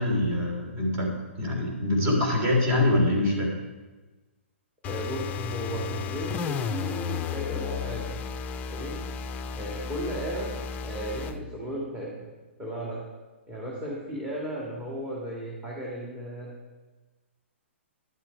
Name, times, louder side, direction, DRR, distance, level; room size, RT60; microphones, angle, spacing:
voice 1, 0.0-3.5, left 1 dB, 35° right, -1 dB, 3.8 m, -24 dB
sound 1, 4.8-11.4, left 6 dB, 20° left, 0.5 m, -33 dB
voice 2, 4.8-8.2 8.7-9.0 9.5-10.5 10.8-12.3 12.6-13.0 13.5-16.5, right 1 dB, 15° right, -5 dB, 2.4 m, -35 dB
11.0 x 7.5 x 4.8 m, 1.2 s
hypercardioid pair, 125°, 7 cm